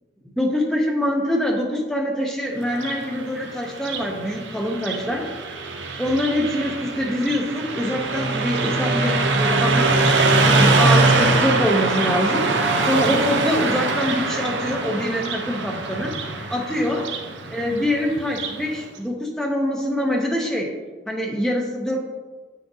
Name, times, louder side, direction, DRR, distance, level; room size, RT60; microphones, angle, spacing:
voice 1, 0.4-5.3 6.0-10.0 10.6-12.5 12.8-16.2 16.5-17.1 17.5-20.7 21.1-22.0, equal, 5° left, 0 dB, 0.6 m, -24 dB
Car passing by, 2.6-18.6, right 3 dB, 75° right, 0.7 m, -22 dB
8.4 x 5.9 x 2.7 m, 1.4 s
head